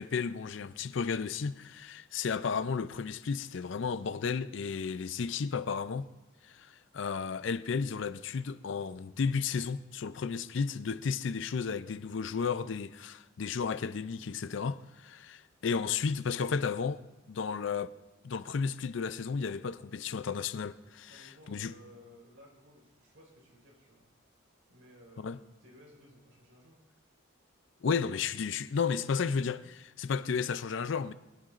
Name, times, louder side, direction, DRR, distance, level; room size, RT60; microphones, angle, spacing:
voice 1, 0.0-6.1 6.4-17.0 17.3-17.9 18.2-21.7 25.2-25.4 27.8-31.1, left 5 dB, 65° left, 0.4 m, -33 dB
voice 2, 21.1-24.0 24.7-26.8, equal, 80° right, 4.6 m, -57 dB
21.5 x 10.5 x 2.5 m
head